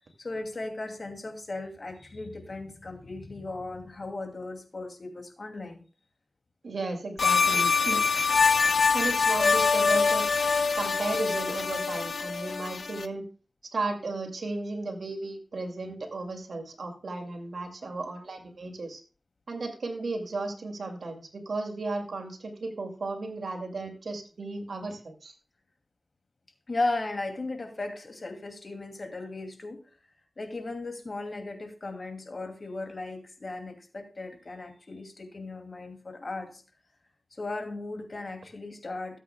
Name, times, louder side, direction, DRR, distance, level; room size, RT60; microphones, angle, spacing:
voice 1, 0.2-5.8 26.7-29.8 30.4-36.6 37.4-39.2, left 2 dB, 60° left, 5 dB, 2.4 m, -36 dB
voice 2, 6.6-8.0 8.9-10.3 10.7-13.2 13.7-19.0 19.5-25.3, right 3 dB, 85° right, 3 dB, 2.3 m, -34 dB
sound 1, 7.2-13.1, left 5 dB, 85° left, 0.5 m, -24 dB
18.0 x 8.3 x 2.2 m, 0.37 s
cardioid pair, 50°, 0 cm